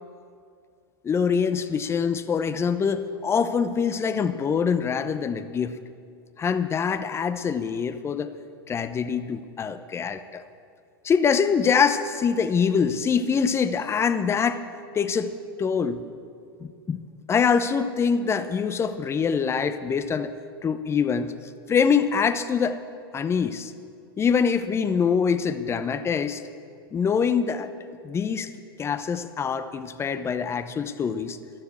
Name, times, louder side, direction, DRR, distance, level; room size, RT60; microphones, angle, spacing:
voice 1, 1.0-5.8 6.4-8.3 8.7-10.4 11.0-14.6 14.9-15.3 15.6-16.0 16.6-17.0 17.3-20.3 20.6-21.3 21.7-22.8 23.1-23.7 24.2-26.4 26.9-27.7 28.0-28.5 28.8-31.4, left 6 dB, 20° left, 12 dB, 0.8 m, -24 dB
12.5 x 12.0 x 8.0 m, 2.4 s
hypercardioid pair, 110°, 12 cm